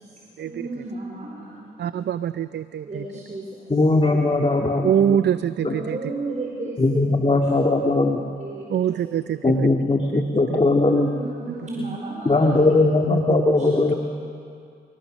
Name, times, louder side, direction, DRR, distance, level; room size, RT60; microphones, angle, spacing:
voice 1, 0.0-1.6 2.8-3.6 5.6-7.4 8.4-8.9 10.8-12.6 13.6-13.8, right 2 dB, 40° right, -3 dB, 4.7 m, -34 dB
voice 2, 1.8-3.0 4.8-6.0 8.7-9.7 10.1-10.2 10.5-10.6, right 9 dB, 60° right, 14 dB, 0.5 m, -24 dB
voice 3, 3.7-5.2 5.6-5.8 6.8-8.2 9.4-11.1 12.3-13.9, left 2 dB, 30° left, 1 dB, 1.9 m, -19 dB
28.0 x 20.5 x 6.4 m, 2.4 s
cardioid pair, 60°, 20 cm